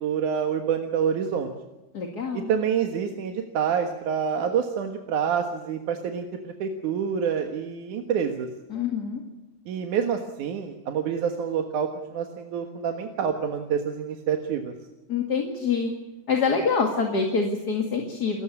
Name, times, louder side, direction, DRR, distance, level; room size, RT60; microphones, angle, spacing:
voice 1, 0.0-1.5 2.3-8.5 9.7-14.7, right 7 dB, 75° right, 5 dB, 3.0 m, -27 dB
voice 2, 1.9-2.5 8.7-9.2 15.1-15.9 16.3-18.4, left 5 dB, 35° left, 2 dB, 2.4 m, -25 dB
29.0 x 15.0 x 8.5 m, 1.1 s
omnidirectional pair, 3.6 m